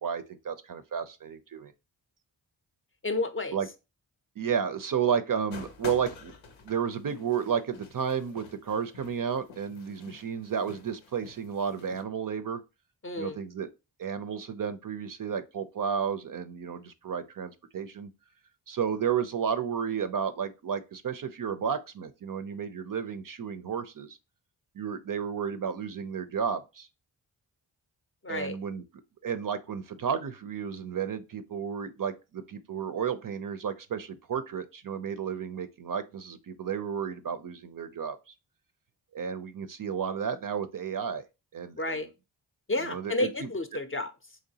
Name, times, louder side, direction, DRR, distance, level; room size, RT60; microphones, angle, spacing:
voice 1, 0.0-1.7 3.5-3.7 4.4-6.3 6.6-12.6 13.2-13.7 14.0-18.1 18.7-24.2 24.8-26.9 28.3-28.8 29.2-38.2 39.1-41.2 41.5-42.0 42.8-43.5, right 7 dB, 50° right, 0.5 m, -32 dB
voice 2, 3.0-3.6 13.0-13.4 28.2-28.6 41.8-42.1 42.7-44.4, left 2 dB, 30° left, 0.5 m, -31 dB
sound 1, 5.5-12.0, left 5 dB, 90° left, 0.7 m, -48 dB
3.8 x 3.1 x 2.7 m
cardioid pair, 50°, 45 cm